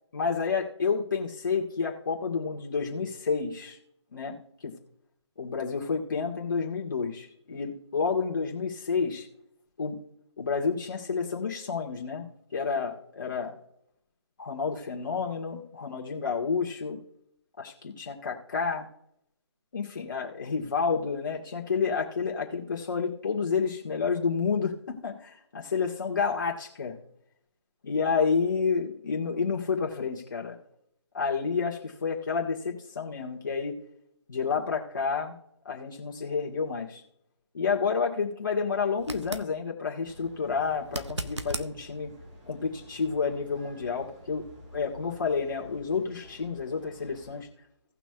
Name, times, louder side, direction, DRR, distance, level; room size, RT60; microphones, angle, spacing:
voice 1, 0.1-3.8 4.1-4.4 4.6-4.7 5.4-9.3 9.8-10.0 10.4-12.2 12.5-13.5 14.4-17.0 17.6-18.9 19.7-24.7 25.0-27.0 27.8-30.5 31.1-33.7 34.3-35.3 35.6-37.0 37.5-42.1 42.4-44.4 44.7-47.5, left 5 dB, 45° left, -2 dB, 1.8 m, -30 dB
sound 1, 39.0-39.5 40.9-41.7 44.7-44.8, right 2 dB, 70° right, 1.0 m, -35 dB
sound 2, 40.0-47.4, equal, 20° right, 1.4 m, -51 dB
18.0 x 6.0 x 2.4 m, 0.74 s
figure-of-eight pair, 150°, 15 cm